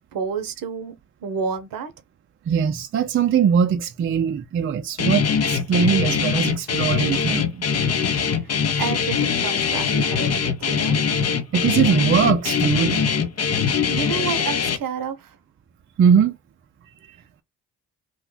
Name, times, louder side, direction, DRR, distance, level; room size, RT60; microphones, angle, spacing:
voice 1, 0.1-0.9 1.2-1.9 8.3-11.0 13.9-15.4, right 6 dB, 55° right, 0.8 m, -30 dB
voice 2, 2.5-7.7 11.5-13.0 16.0-16.4, right 7 dB, 30° right, 0.4 m, -21 dB
Guitar, 5.0-14.8, left 6 dB, 40° left, 0.6 m, -22 dB
2.4 x 2.1 x 3.7 m
hypercardioid pair, 45°, 40 cm